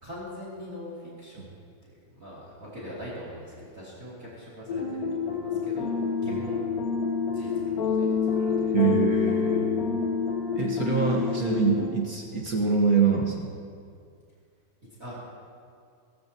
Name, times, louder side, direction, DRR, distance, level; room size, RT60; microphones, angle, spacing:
voice 1, 0.0-1.5 2.1-5.9 6.2-6.6 7.3-8.1 8.3-8.7 15.0-15.2, equal, 25° right, -6 dB, 2.9 m, -42 dB
sound 1, 4.7-11.9, left 6 dB, 65° left, 0.9 m, -27 dB
voice 2, 8.7-9.9 10.6-13.5, right 5 dB, 55° right, -1 dB, 1.0 m, -25 dB
21.5 x 15.5 x 2.9 m, 2.2 s
omnidirectional pair, 3.4 m